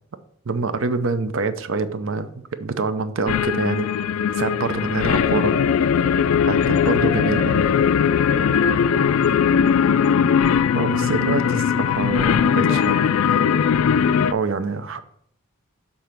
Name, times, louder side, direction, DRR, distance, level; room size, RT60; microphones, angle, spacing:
voice 1, 0.5-2.3 2.6-3.9 4.1-5.6 6.5-7.7 10.5-13.0 14.3-15.0, right 4 dB, 65° right, 11 dB, 0.6 m, -25 dB
sound 1, 3.3-14.3, left 7 dB, 75° left, 0.3 m, -19 dB
voice 2, 8.2-9.6 12.2-13.8, equal, 10° right, 4 dB, 0.8 m, -39 dB
7.0 x 3.8 x 5.8 m, 0.69 s
head